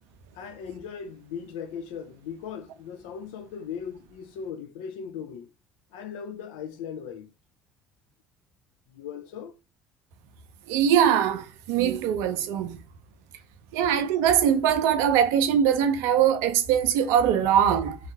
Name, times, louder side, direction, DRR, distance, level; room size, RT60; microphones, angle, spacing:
voice 1, 0.3-5.5 5.9-7.3 8.9-9.5, left 7 dB, 65° left, 0.4 m, -38 dB
voice 2, 10.7-12.8 13.7-18.0, right 9 dB, 60° right, 0.5 m, -22 dB
3.2 x 2.3 x 2.8 m
figure-of-eight pair, 60°, 6 cm